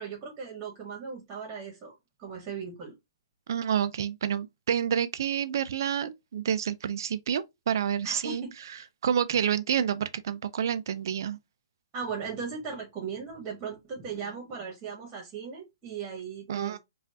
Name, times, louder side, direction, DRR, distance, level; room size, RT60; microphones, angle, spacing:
voice 1, 0.0-2.9 8.0-8.5 11.9-16.8, right 6 dB, 20° right, 1.4 m, -38 dB
voice 2, 3.5-8.4 9.0-11.4 16.5-16.8, right 8 dB, 55° right, 0.4 m, -28 dB
5.0 x 2.4 x 2.5 m
figure-of-eight pair, 125°, 2 cm